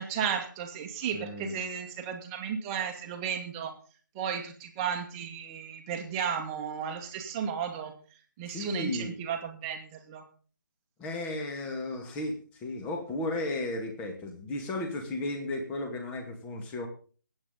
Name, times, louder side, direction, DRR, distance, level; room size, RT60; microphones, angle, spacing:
voice 1, 0.0-3.7 4.2-7.9 8.4-10.3, right 7 dB, 15° right, 4 dB, 1.8 m, -34 dB
voice 2, 1.1-1.5 8.5-9.1 11.0-16.9, left 2 dB, 10° left, 4 dB, 2.0 m, -34 dB
22.0 x 8.9 x 3.9 m, 0.39 s
figure-of-eight pair, 150°, 11 cm